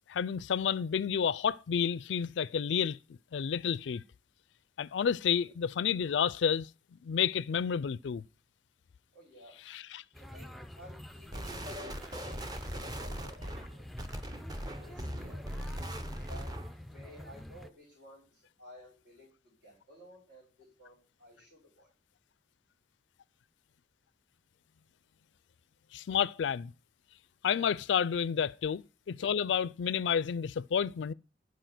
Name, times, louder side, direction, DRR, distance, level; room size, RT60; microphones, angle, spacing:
voice 1, 0.1-3.0 3.3-4.0 4.8-6.7 7.0-8.2 9.7-10.0 25.9-26.7 27.4-31.1, left 7 dB, 85° left, 0.4 m, -30 dB
voice 2, 9.1-9.5 10.3-10.5 10.8-13.8 14.8-15.7 16.3-16.5 16.9-19.3 19.6-21.9 27.5-27.7, equal, 75° right, 5.1 m, -55 dB
sound 1, 10.1-17.7, left 1 dB, ahead, 0.4 m, -47 dB
sound 2, 11.3-16.8, equal, 20° right, 0.7 m, -40 dB
11.5 x 4.8 x 6.0 m
head